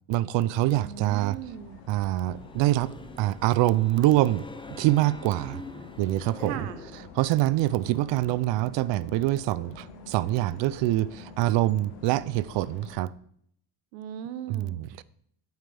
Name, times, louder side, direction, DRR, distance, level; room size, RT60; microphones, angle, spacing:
voice 1, 0.1-1.4 1.9-2.9 3.2-4.4 4.7-5.6 6.0-6.7 7.2-13.1 14.5-15.0, right 16 dB, 65° right, 0.6 m, -25 dB
sound 1, 0.6-13.0, left 4 dB, 80° left, 1.5 m, -48 dB
voice 2, 0.8-1.8 6.4-6.8 13.9-15.0, right 9 dB, 90° right, 0.9 m, -38 dB
sound 2, 1.9-7.2, left 3 dB, 10° left, 0.8 m, -44 dB
8.2 x 8.2 x 3.4 m
supercardioid pair, 90°, 49 cm